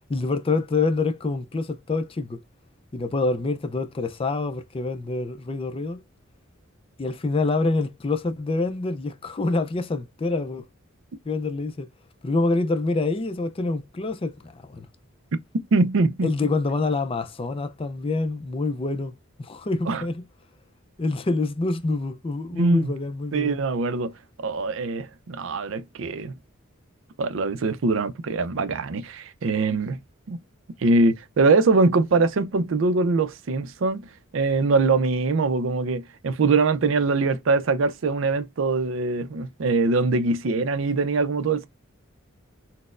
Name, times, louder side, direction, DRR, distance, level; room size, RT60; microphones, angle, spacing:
voice 1, 0.1-2.4 2.9-6.0 7.0-10.6 11.3-11.9 12.2-14.9 16.2-20.2 21.0-23.6, left 3 dB, 25° left, 0.4 m, -26 dB
voice 2, 15.7-16.3 19.9-20.0 22.5-22.9 23.3-24.1 24.4-26.4 27.2-30.0 30.3-30.4 30.8-41.7, right 3 dB, 65° right, 0.4 m, -23 dB
4.1 x 2.0 x 2.4 m
head